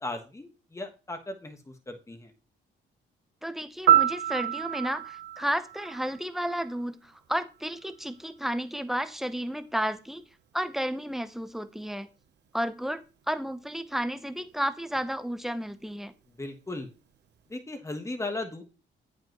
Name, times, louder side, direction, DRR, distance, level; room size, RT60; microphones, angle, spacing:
voice 1, 0.0-1.6 1.9-2.3 16.4-16.9 17.5-18.6, left 2 dB, 15° left, 1.3 m, -36 dB
voice 2, 3.4-10.2 10.5-12.1 12.5-16.1, equal, ahead, 0.7 m, -32 dB
Piano, 3.9-6.8 14.9-15.1, right 11 dB, 60° right, 0.8 m, -27 dB
8.7 x 5.3 x 3.0 m
cardioid pair, 90°, 20 cm